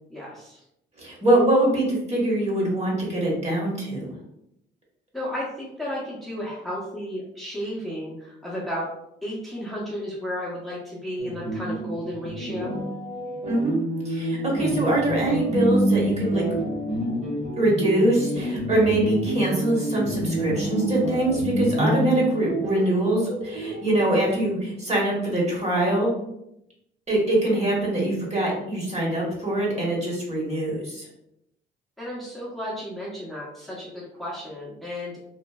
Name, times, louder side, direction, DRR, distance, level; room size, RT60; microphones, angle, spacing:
voice 1, 0.1-0.6 5.1-8.9 9.2-12.7 32.0-35.1, equal, ahead, -7 dB, 0.8 m, -33 dB
voice 2, 1.0-4.1 13.5-13.8 14.0-16.6 17.6-26.1 27.1-31.1, right 1 dB, 35° right, -3 dB, 1.2 m, -23 dB
sound 1, 11.2-24.5, right 1 dB, 75° right, 1.0 m, -28 dB
3.0 x 2.4 x 2.3 m, 0.81 s
cardioid pair, 90°, 20 cm